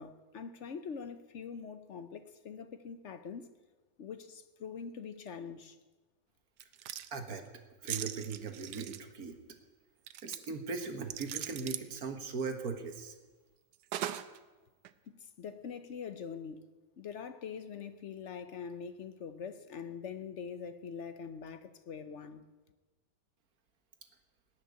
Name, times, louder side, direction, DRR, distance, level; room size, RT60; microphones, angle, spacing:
voice 1, 0.0-3.5 4.0-5.8 15.2-16.7 17.0-22.4, left 6 dB, 60° left, 11 dB, 0.8 m, -44 dB
sound 1, 6.6-7.1 7.9-9.0 10.1-10.4 11.1-11.9 13.9-14.4 14.8-14.9, right 11 dB, 75° right, 1.3 m, -39 dB
voice 2, 7.1-7.4 7.8-9.3 10.2-13.1, right 4 dB, 55° right, 6 dB, 1.7 m, -39 dB
18.0 x 6.6 x 9.5 m, 1.2 s
omnidirectional pair, 1.9 m